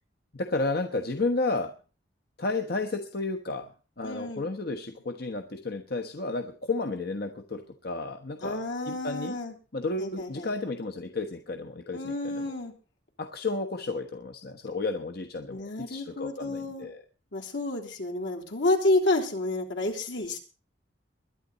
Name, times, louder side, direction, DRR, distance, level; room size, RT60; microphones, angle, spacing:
voice 1, 0.3-1.7 2.4-3.7 4.0-9.4 9.7-12.5 13.2-17.0, left 3 dB, 60° left, 5 dB, 1.2 m, -32 dB
voice 2, 4.0-4.5 8.4-9.5 10.0-10.5 11.9-12.7 15.5-16.9 17.3-20.4, left 2 dB, 75° left, 1 dB, 3.5 m, -29 dB
21.0 x 11.0 x 4.1 m, 0.35 s
head